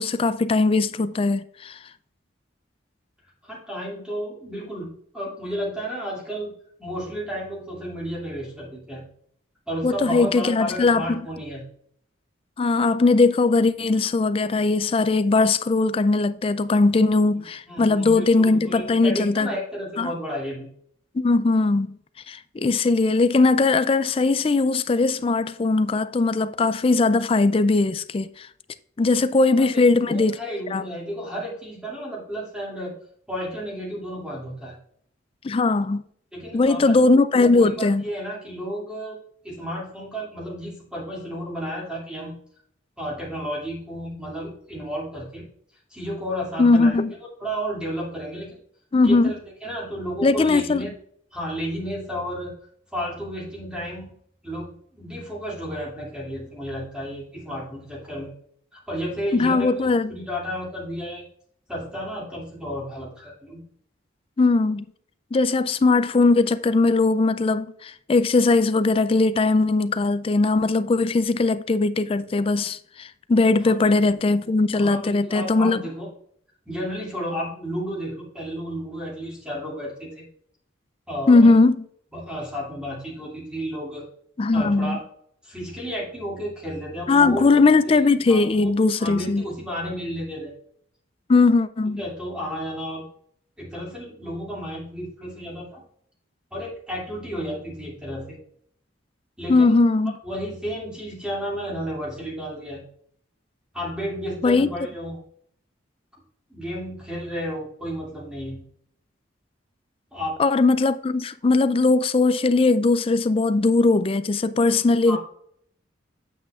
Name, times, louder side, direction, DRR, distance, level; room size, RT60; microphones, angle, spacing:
voice 1, 0.0-1.8 9.8-11.2 12.6-19.5 20.0-20.1 21.1-21.9 22.3-28.5 29.0-30.4 30.7-30.8 35.4-36.0 36.5-38.0 46.6-47.1 48.9-49.3 50.2-50.9 59.3-60.1 64.4-64.9 65.3-75.8 81.3-81.8 84.4-85.0 87.1-89.4 91.3-92.0 99.5-100.2 104.4-104.7 110.4-115.2, left 3 dB, 30° left, 0.3 m, -19 dB
voice 2, 3.4-6.5 6.8-9.1 9.7-11.6 17.4-20.7 29.5-32.9 33.3-34.8 36.3-37.0 37.3-39.2 39.4-42.3 43.0-45.4 45.9-47.0 47.4-48.6 49.0-50.9 51.3-52.5 52.9-54.1 54.4-58.3 58.7-61.3 61.7-63.6 73.6-73.7 74.0-74.1 74.7-76.1 76.7-80.3 81.1-81.5 82.1-84.1 84.5-85.0 85.4-87.5 87.9-88.0 88.3-88.7 89.0-90.5 92.0-93.1 93.6-95.8 96.5-98.4 99.4-99.8 100.2-102.8 103.7-105.2 106.5-108.6 110.1-110.4 115.1-115.2, equal, 5° right, 2.4 m, -32 dB
8.5 x 7.5 x 2.4 m
head